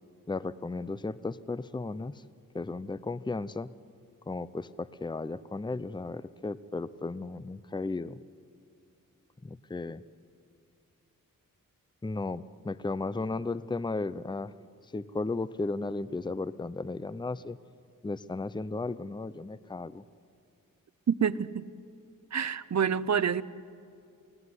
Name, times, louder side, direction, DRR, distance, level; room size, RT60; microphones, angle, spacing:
voice 1, 0.3-2.2 2.5-3.7 4.3-8.2 9.4-10.0 12.0-14.5 14.9-17.6 18.0-20.0, left 3 dB, 15° left, 17 dB, 0.6 m, -35 dB
voice 2, 21.1-21.6 22.3-23.4, right 7 dB, 55° right, 17 dB, 0.8 m, -27 dB
27.5 x 18.0 x 9.8 m, 2.4 s
wide cardioid pair, 75°, 34 cm